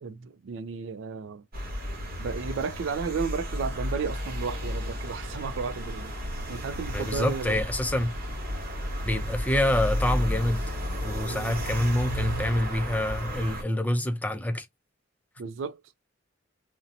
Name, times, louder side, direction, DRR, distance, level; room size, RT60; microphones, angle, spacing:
voice 1, 0.0-1.4 2.2-6.1 6.5-7.6 11.3-11.6 15.4-15.8, right 5 dB, 75° right, 0.3 m, -33 dB
sound 1, 1.5-13.6, equal, 50° right, 1.0 m, -33 dB
voice 2, 6.9-8.1 9.0-10.6 11.0-14.7, left 1 dB, 10° left, 0.4 m, -26 dB
2.6 x 2.1 x 2.6 m
head